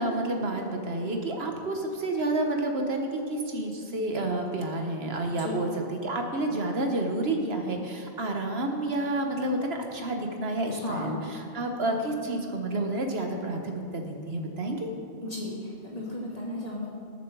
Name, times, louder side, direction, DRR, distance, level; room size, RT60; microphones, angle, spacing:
voice 1, 0.0-5.7 6.0-14.9, right 2 dB, 70° right, 3 dB, 1.4 m, -30 dB
voice 2, 10.7-11.1 15.2-16.9, left 2 dB, 35° left, -5 dB, 2.9 m, -35 dB
19.0 x 7.2 x 4.7 m, 2.6 s
omnidirectional pair, 1.1 m